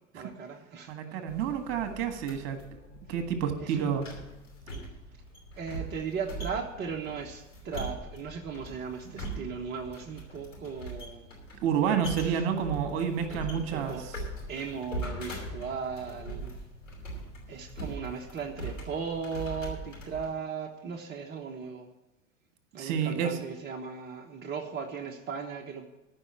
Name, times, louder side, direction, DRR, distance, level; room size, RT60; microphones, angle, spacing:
voice 1, 0.1-1.2 3.6-3.9 5.6-11.3 12.2-12.4 13.5-14.1 14.5-16.6 17.5-21.9 22.7-25.9, right 6 dB, 25° right, 2 dB, 1.2 m, -37 dB
voice 2, 0.9-2.8 3.1-4.1 9.2-9.3 11.6-13.9 22.8-23.4, right 7 dB, 50° right, 7 dB, 1.7 m, -29 dB
sound 1, 1.3-20.3, right 1 dB, 85° left, 4.7 m, -41 dB
14.5 x 5.7 x 8.7 m, 1.0 s
figure-of-eight pair, 85°, 38 cm